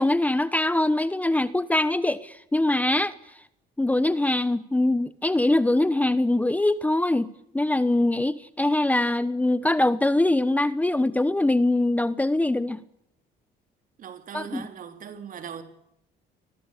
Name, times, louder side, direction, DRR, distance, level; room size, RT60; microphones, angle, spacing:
voice 1, 0.0-3.1 3.8-12.8 14.3-14.6, left 2 dB, 10° left, 1.0 m, -23 dB
voice 2, 14.0-15.6, right 8 dB, 55° right, 3.9 m, -39 dB
29.0 x 22.0 x 8.5 m
cardioid pair, 110°, 17 cm